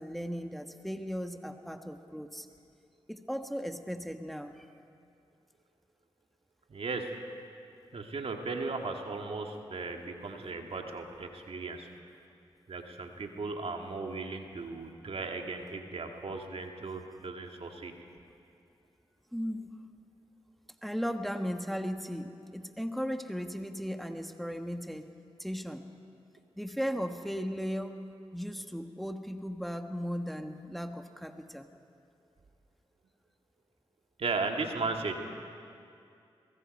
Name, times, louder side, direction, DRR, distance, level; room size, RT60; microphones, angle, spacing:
voice 1, 0.0-2.5 3.1-4.7 19.3-19.7 20.8-25.1 25.4-25.9 26.6-28.0 28.3-31.7, equal, ahead, 6 dB, 1.4 m, -36 dB
voice 2, 6.7-7.2 7.9-11.9 12.7-17.9 34.2-35.3, right 3 dB, 65° right, 3 dB, 2.0 m, -36 dB
23.0 x 21.5 x 5.4 m, 2.5 s
cardioid pair, 40°, 11 cm